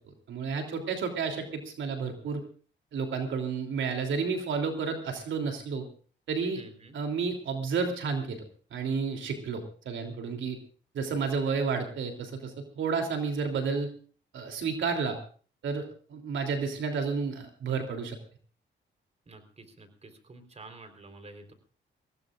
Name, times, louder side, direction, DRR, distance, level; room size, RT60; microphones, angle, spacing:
voice 1, 0.3-2.4 2.9-5.8 6.3-6.6 6.9-8.4 8.7-10.6 10.9-13.9 14.3-15.2 15.6-18.2, right 5 dB, 80° right, 4 dB, 3.2 m, -31 dB
voice 2, 6.5-7.0 19.3-21.5, right 2 dB, 35° right, 8 dB, 4.1 m, -49 dB
24.5 x 17.5 x 2.5 m, 0.41 s
cardioid pair, 90°, 20 cm